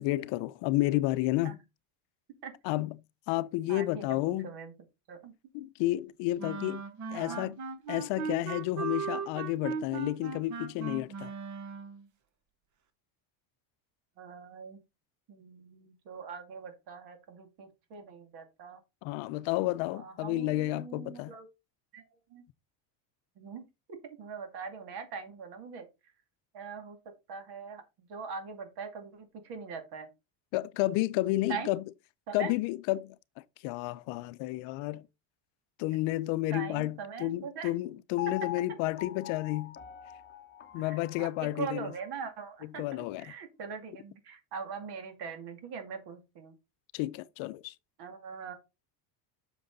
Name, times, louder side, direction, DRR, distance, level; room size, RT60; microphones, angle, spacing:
voice 1, 0.0-1.6 2.6-3.0 3.3-4.5 5.5-6.8 7.1-7.6 7.9-11.3 19.0-21.3 30.5-31.8 32.3-33.2 33.6-35.1 35.8-39.8 40.7-41.9 42.8-43.3 46.9-47.7, left 17 dB, 70° left, 0.7 m, -31 dB
voice 2, 3.7-4.7 5.1-5.3 7.1-7.5 14.2-14.8 15.3-18.8 19.9-21.5 21.9-22.0 22.3-22.4 23.4-23.6 24.0-25.9 26.5-27.0 27.3-30.1 30.8-31.7 32.3-32.5 35.9-36.0 36.5-37.7 40.8-46.6 48.0-48.5, right 6 dB, 50° right, 2.4 m, -42 dB
sound 1, 6.4-12.0, right 5 dB, 35° right, 1.0 m, -38 dB
Piano, 38.2-42.3 42.8-42.9, left 12 dB, 25° left, 0.9 m, -43 dB
7.8 x 6.2 x 4.0 m
cardioid pair, 160°, 47 cm